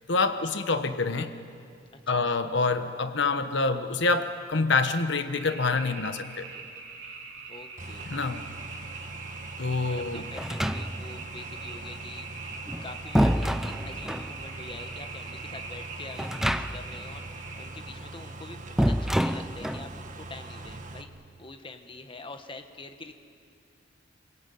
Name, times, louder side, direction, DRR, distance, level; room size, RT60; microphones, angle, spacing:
voice 1, 0.1-1.4 2.1-6.5 8.1-8.4 9.6-10.3, left 3 dB, 65° left, 9 dB, 1.2 m, -26 dB
voice 2, 1.9-2.2 7.5-8.0 9.9-12.3 12.8-21.1 21.4-23.1, left 3 dB, 25° left, 6 dB, 1.3 m, -45 dB
sound 1, 5.3-17.7, right 4 dB, 65° right, 3.8 m, -43 dB
sound 2, 7.8-21.0, right 2 dB, 40° right, 1.5 m, -42 dB
sound 3, 10.4-11.2 12.5-14.3 16.2-17.0 17.2-17.3 18.8-19.9, equal, ahead, 0.6 m, -27 dB
27.5 x 22.0 x 9.3 m, 2.3 s
head